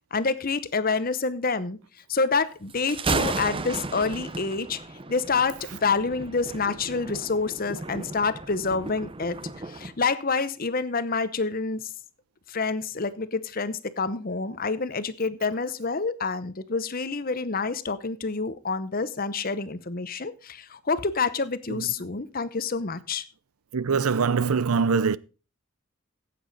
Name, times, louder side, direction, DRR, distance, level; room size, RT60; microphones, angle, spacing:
voice 1, 0.1-1.8 2.1-4.8 5.1-9.4 9.6-11.9 12.5-23.3, left 4 dB, 40° left, 0.8 m, -27 dB
Thunder, 2.7-9.9, right 3 dB, 25° right, 0.8 m, -34 dB
voice 2, 23.7-25.2, right 5 dB, 80° right, 0.6 m, -23 dB
15.5 x 8.6 x 4.1 m
head